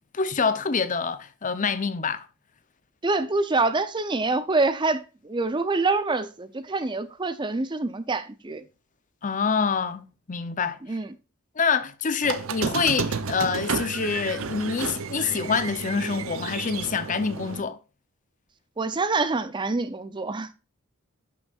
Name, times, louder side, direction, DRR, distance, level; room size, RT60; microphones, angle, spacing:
voice 1, 0.1-2.3 9.2-10.8 11.6-17.8, left 5 dB, 35° left, 0.6 m, -26 dB
voice 2, 3.0-8.6 10.8-11.1 18.8-20.5, right 3 dB, 20° right, 0.5 m, -26 dB
Squeak, 12.2-17.6, right 5 dB, 70° right, 0.7 m, -31 dB
11.5 x 6.2 x 2.4 m
head